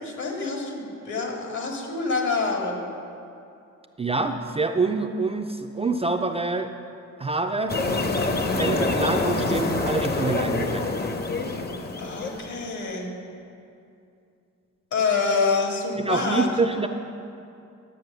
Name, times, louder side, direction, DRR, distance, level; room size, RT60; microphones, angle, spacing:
voice 1, 0.0-2.8 12.0-13.1 14.9-16.5, left 4 dB, 65° left, 0 dB, 2.2 m, -26 dB
voice 2, 4.0-6.7 7.2-7.8 8.5-10.9 16.0-16.9, right 3 dB, 20° right, 5 dB, 0.4 m, -26 dB
sound 1, 7.7-12.6, left 3 dB, 30° left, 0.8 m, -26 dB
11.0 x 7.6 x 6.6 m, 2.6 s
cardioid pair, 120°, 31 cm